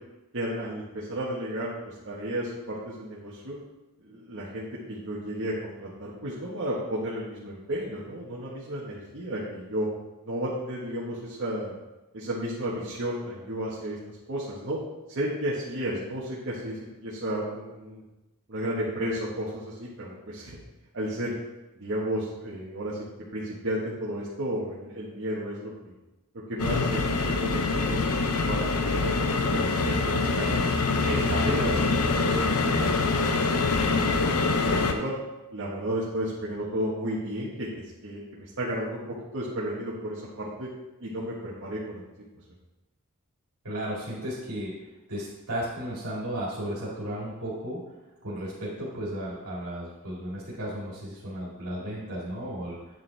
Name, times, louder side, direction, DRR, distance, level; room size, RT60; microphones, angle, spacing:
voice 1, 0.3-3.6 4.0-9.9 10.2-11.7 12.1-14.8 15.1-18.0 18.5-20.6 20.9-21.4 21.8-23.0 23.3-25.9 26.5-28.2 28.5-30.5 31.1-33.6 34.0-34.2 34.5-35.1 35.5-37.7 38.0-39.0 39.3-40.7 41.0-42.0, right 1 dB, 60° right, -6 dB, 1.4 m, -33 dB
sound 1, 26.6-34.9, left 3 dB, 75° left, 0.8 m, -25 dB
voice 2, 43.6-44.7 45.1-47.8 48.2-52.8, equal, 80° right, -7 dB, 2.2 m, -34 dB
9.2 x 6.9 x 3.4 m, 1.1 s
head